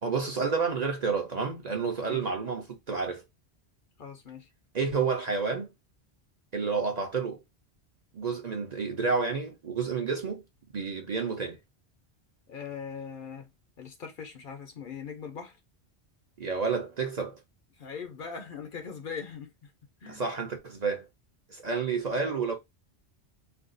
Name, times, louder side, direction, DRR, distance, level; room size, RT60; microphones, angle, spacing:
voice 1, 0.0-3.2 4.7-5.7 6.5-7.4 8.1-10.4 10.7-11.6 16.4-17.4 20.1-21.1 21.5-22.5, right 5 dB, 45° right, 0.6 m, -30 dB
voice 2, 4.0-4.5 12.5-13.5 13.8-15.6 17.8-19.7 20.0-20.3, left 6 dB, 60° left, 0.7 m, -40 dB
2.6 x 2.3 x 3.7 m
omnidirectional pair, 1.1 m